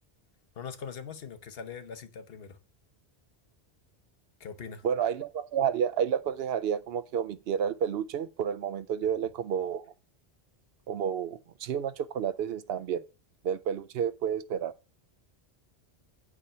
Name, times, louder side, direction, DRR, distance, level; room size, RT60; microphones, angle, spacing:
voice 1, 0.5-2.6 4.4-4.9 9.0-9.1, left 6 dB, 65° left, 1.0 m, -42 dB
voice 2, 4.8-9.8 10.9-13.0 13.4-14.7, right 8 dB, 70° right, 0.8 m, -30 dB
8.8 x 4.9 x 5.5 m
omnidirectional pair, 1.1 m